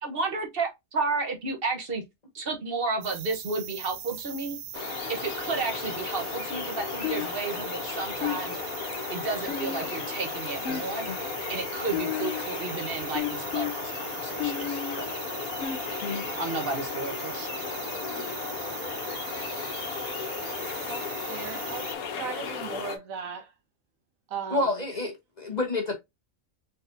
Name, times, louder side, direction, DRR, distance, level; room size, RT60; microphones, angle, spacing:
voice 1, 0.0-2.0 2.3-4.6 5.1-8.6 9.1-11.1 11.5-15.1 16.2-17.5, right 3 dB, 45° right, 1.2 m, -32 dB
sound 1, 3.0-21.9, right 9 dB, 60° right, 0.7 m, -40 dB
sound 2, 4.7-23.0, left 6 dB, 90° left, 1.3 m, -35 dB
sound 3, 7.0-7.6 8.2-8.7 9.5-10.2 10.6-11.3 11.9-12.6 13.1-13.7 14.4-15.0 15.6-16.3, left 9 dB, 60° left, 0.9 m, -33 dB
voice 2, 20.9-23.5 24.3-24.8, right 6 dB, 75° right, 1.4 m, -37 dB
voice 3, 24.5-25.9, left 2 dB, 35° left, 1.0 m, -28 dB
4.0 x 4.0 x 2.6 m
omnidirectional pair, 1.4 m